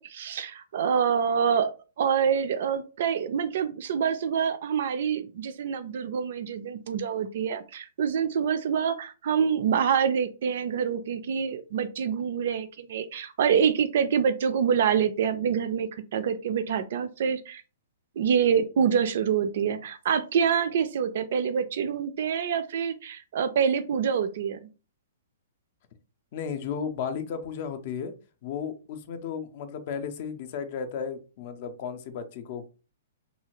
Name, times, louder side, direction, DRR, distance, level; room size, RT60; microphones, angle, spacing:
voice 1, 0.0-1.7 2.0-17.6 18.2-24.7, right 7 dB, 50° right, 12 dB, 0.3 m, -26 dB
voice 2, 26.3-28.1 28.4-32.7, left 7 dB, 45° left, 9 dB, 0.4 m, -34 dB
2.7 x 2.7 x 2.8 m, 0.33 s
figure-of-eight pair, 115°, 0 cm